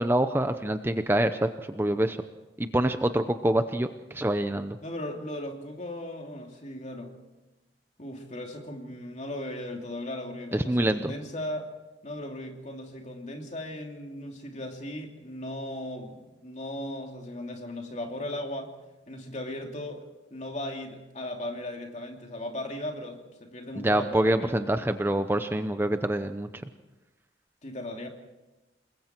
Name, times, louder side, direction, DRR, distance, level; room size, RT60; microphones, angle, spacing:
voice 1, 0.0-2.2 2.6-4.8 10.5-11.1 23.8-26.5, right 1 dB, 15° right, 9 dB, 0.7 m, -26 dB
voice 2, 4.8-7.2 8.0-11.7 12.0-18.7 19.1-20.0 20.3-24.5 27.6-28.1, left 1 dB, 40° left, 2 dB, 2.9 m, -37 dB
28.5 x 21.0 x 4.6 m, 1.1 s
head